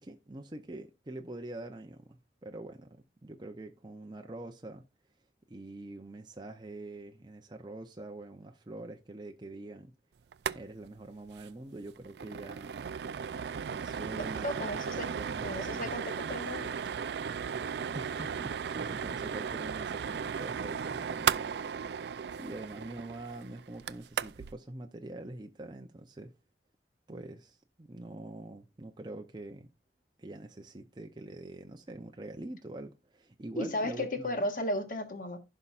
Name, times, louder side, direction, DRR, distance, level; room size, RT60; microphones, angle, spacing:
voice 1, 0.0-4.8 5.5-9.9 10.5-12.8 13.7-15.9 17.9-21.5 22.3-26.3 27.1-29.7 30.2-34.5, right 2 dB, 25° right, 0.6 m, -45 dB
sound 1, 10.3-10.6 10.9-11.0 11.3-11.5 11.8-24.5, right 7 dB, 65° right, 0.4 m, -36 dB
voice 2, 14.1-15.1 15.4-16.7 33.6-35.4, left 1 dB, 50° left, 1.4 m, -35 dB
15.5 x 5.5 x 2.4 m
head